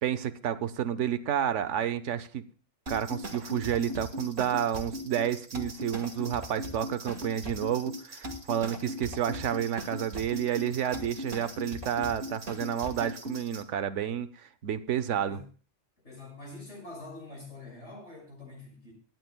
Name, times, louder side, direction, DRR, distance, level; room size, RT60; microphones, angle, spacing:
voice 1, 0.0-2.4 2.9-15.4, right 9 dB, 85° right, 12 dB, 1.0 m, -30 dB
sound 1, 2.9-13.6, equal, 65° right, 2.0 m, -39 dB
voice 2, 16.0-18.9, left 2 dB, 70° left, -1 dB, 6.6 m, -45 dB
24.5 x 10.5 x 2.2 m, 0.38 s
omnidirectional pair, 1.2 m